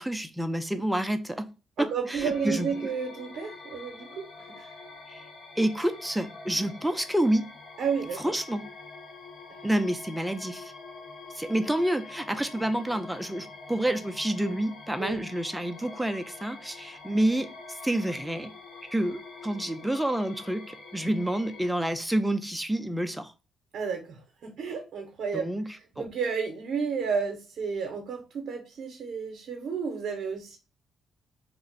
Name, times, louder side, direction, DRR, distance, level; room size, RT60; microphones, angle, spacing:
voice 1, 0.0-1.5 1.8-2.7 5.1-5.2 5.6-7.5 8.2-8.6 9.6-10.7 11.3-18.5 18.9-23.3 25.3-25.6 26.0-26.1, right 1 dB, 5° right, 0.4 m, -28 dB
voice 2, 1.8-4.3 4.5-4.7 7.8-8.2 15.0-15.3 23.7-25.5 26.0-30.6, right 6 dB, 70° right, 0.6 m, -32 dB
sound 1, 2.2-21.7, left 4 dB, 65° left, 0.8 m, -46 dB
2.4 x 2.0 x 3.8 m
cardioid pair, 90°, 0 cm